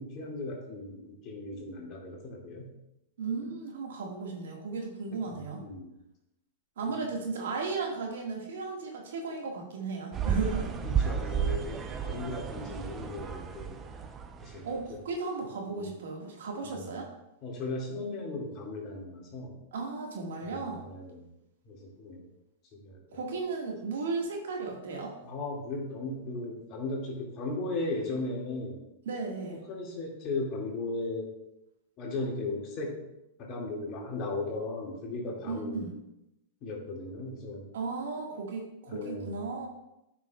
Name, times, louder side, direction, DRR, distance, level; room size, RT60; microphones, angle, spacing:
voice 1, 0.0-2.7 5.1-5.2 5.5-5.9 10.8-13.8 14.4-15.0 15.4-15.9 16.7-16.9 17.4-19.6 20.4-21.3 21.7-22.2 22.7-23.2 25.2-28.8 29.7-31.3 32.0-33.0 33.4-35.9 36.6-37.7 38.9-39.4, left 2 dB, 40° left, -1 dB, 2.1 m, -37 dB
voice 2, 3.2-5.6 6.8-10.7 14.6-17.1 19.7-20.8 23.1-25.1 29.1-29.6 35.4-35.9 37.7-39.7, right 4 dB, 80° right, 0 dB, 1.7 m, -35 dB
sound 1, 10.1-14.8, right 7 dB, 25° right, 0.6 m, -32 dB
9.4 x 5.8 x 2.3 m, 0.87 s
hypercardioid pair, 115°, 0 cm